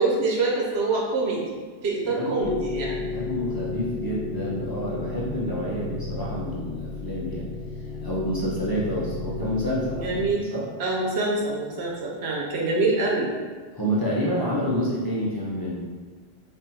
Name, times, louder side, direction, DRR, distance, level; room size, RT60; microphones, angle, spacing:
voice 1, 0.0-1.5 1.8-3.0 5.8-6.0 10.0-10.4 10.8-13.3, right 3 dB, 90° right, -2 dB, 1.0 m, -25 dB
voice 2, 2.0-2.3 3.0-7.5 8.0-10.1 10.5-10.7 13.7-15.8, equal, 25° left, -8 dB, 0.6 m, -28 dB
sound 1, 2.4-10.3, left 3 dB, 60° left, 0.8 m, -33 dB
3.8 x 2.7 x 2.8 m, 1.4 s
omnidirectional pair, 1.0 m